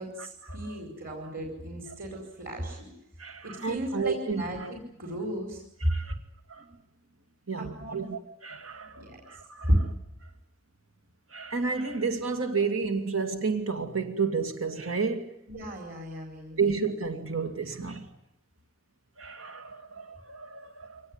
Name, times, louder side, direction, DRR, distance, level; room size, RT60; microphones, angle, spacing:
voice 1, 0.0-2.9 3.4-5.9 7.6-8.1 9.0-9.2 9.7-9.8 15.5-16.7 17.6-17.8, equal, 45° right, 4.9 m, -33 dB
voice 2, 3.2-4.7 5.8-6.1 6.5-6.6 7.5-9.7 11.3-15.4 16.6-18.1 19.2-21.0, right 4 dB, 85° right, 2.4 m, -31 dB
24.0 x 19.5 x 9.8 m
head